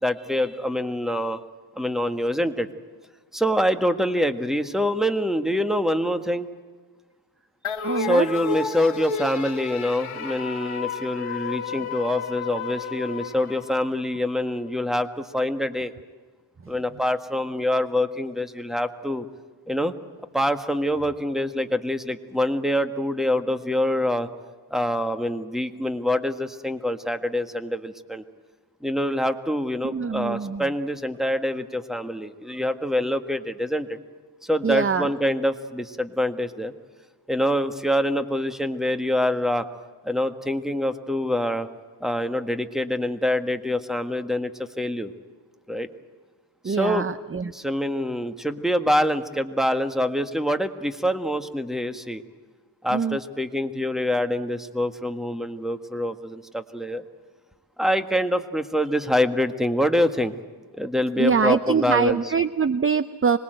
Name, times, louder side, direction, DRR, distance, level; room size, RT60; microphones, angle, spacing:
voice 1, 0.0-1.4 1.8-2.7 3.3-6.5 8.0-15.9 16.7-19.3 19.7-19.9 20.3-24.3 24.7-28.2 28.8-34.0 34.4-36.7 37.3-39.7 40.0-41.7 42.0-45.1 45.7-45.9 46.7-47.1 47.5-52.2 52.8-57.0 57.8-60.3 60.7-62.2, left 1 dB, ahead, 8 dB, 1.6 m, -25 dB
sound 1, 7.6-14.2, left 5 dB, 80° left, 1.7 m, -32 dB
voice 2, 7.8-8.3 29.8-30.6 34.6-35.1 46.6-47.5 52.9-53.2 61.2-63.4, right 6 dB, 25° right, 13 dB, 0.7 m, -23 dB
25.5 x 21.0 x 8.0 m, 1.4 s
cardioid pair, 90°, 49 cm